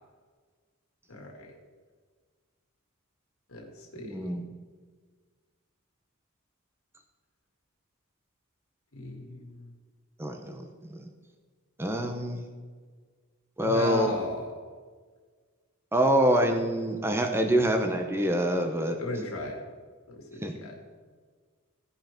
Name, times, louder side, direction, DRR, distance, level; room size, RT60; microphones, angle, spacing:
voice 1, 1.1-1.6 3.5-4.3 8.9-9.7 13.6-14.5 19.0-19.6 20.1-20.7, left 1 dB, 65° left, 0 dB, 2.2 m, -37 dB
voice 2, 4.0-4.4 10.2-11.1 11.8-12.4 13.6-14.2 15.9-19.0 20.4-20.5, equal, 10° right, 4 dB, 0.8 m, -26 dB
16.5 x 5.6 x 4.4 m, 1.5 s
head